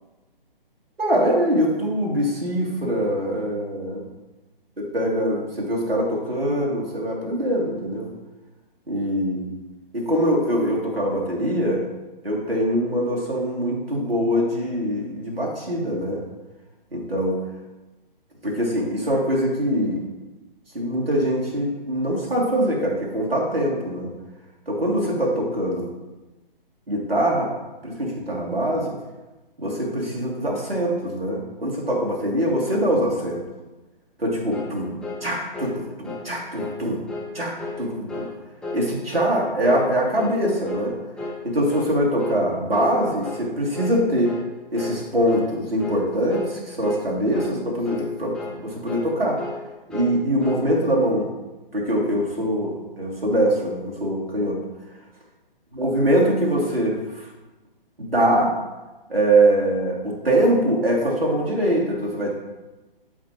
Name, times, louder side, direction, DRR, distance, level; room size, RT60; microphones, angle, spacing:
voice 1, 1.0-4.0 4.8-8.1 8.9-9.5 9.9-11.8 12.2-16.2 16.9-17.4 18.4-20.0 20.7-24.1 24.7-25.9 26.9-27.5 27.8-28.9 29.6-33.4 34.2-35.0 35.2-37.0 37.3-38.3 38.7-41.0 41.4-44.4 44.7-49.4 49.9-51.3 51.7-54.6 55.7-57.3 58.0-58.6 59.1-62.4, right 1 dB, 80° right, -3 dB, 2.7 m, -23 dB
sound 1, 34.5-34.8 35.0-35.2 35.5-35.8 36.0-36.3 36.6-36.8 37.1-37.3 37.6-37.8 38.1-38.3 38.6-38.8 39.1-39.4 39.6-39.9 40.1-40.4 40.7-40.9 41.2-41.4 41.7-41.9 42.2-42.4 42.7-42.9 43.2-43.5 43.7-44.0 44.2-44.5 44.8-45.0 45.3-45.5 45.8-46.0 46.3-46.5 46.8-47.1 47.3-47.5 47.8-48.1 48.3-48.6 48.9-49.1 49.4-49.6 49.9-50.2 50.4-50.7, left 3 dB, 5° left, 0.7 m, -33 dB
12.5 x 5.5 x 3.0 m, 1.1 s
figure-of-eight pair, 135°, 29 cm